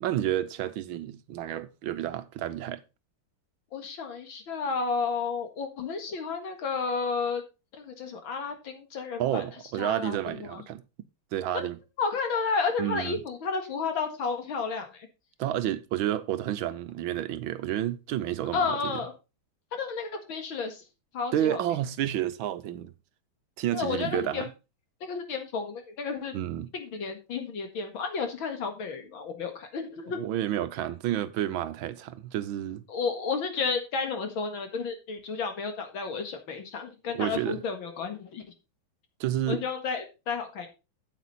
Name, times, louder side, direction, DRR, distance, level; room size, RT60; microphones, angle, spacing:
voice 1, 0.0-2.8 9.2-10.8 11.3-11.8 12.8-13.2 15.4-19.0 21.3-22.9 23.6-24.5 26.3-26.7 30.1-32.8 37.1-37.6 39.2-39.6, right 12 dB, 80° right, 1.5 m, -30 dB
voice 2, 3.7-7.4 7.7-9.4 9.8-10.6 11.5-11.6 12.0-15.1 18.5-19.1 19.7-20.8 21.1-21.6 23.7-24.5 25.0-26.3 26.7-30.2 32.9-38.4 39.5-40.7, left 5 dB, 75° left, 2.6 m, -32 dB
8.8 x 8.3 x 4.2 m
omnidirectional pair, 2.2 m